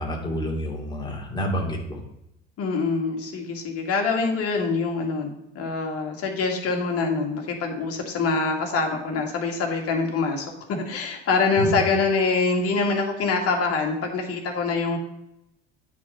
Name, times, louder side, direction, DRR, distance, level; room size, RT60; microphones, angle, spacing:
voice 1, 0.0-2.0 11.6-11.8, equal, 10° left, -1 dB, 2.4 m, -28 dB
voice 2, 2.6-15.0, left 4 dB, 40° left, 1 dB, 2.1 m, -25 dB
8.4 x 4.9 x 5.4 m, 0.85 s
figure-of-eight pair, 65°, 35 cm